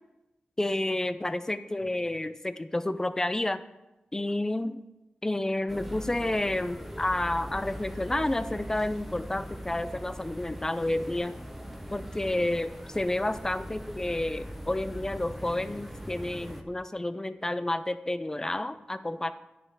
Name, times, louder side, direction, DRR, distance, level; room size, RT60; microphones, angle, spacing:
voice 1, 0.6-3.6 4.1-4.8 5.2-11.4 11.9-19.3, left 1 dB, 15° left, 13 dB, 0.4 m, -30 dB
sound 1, 5.7-16.6, equal, ahead, 0.8 m, -41 dB
10.5 x 5.5 x 4.7 m, 0.99 s
wide cardioid pair, 100°, 3 cm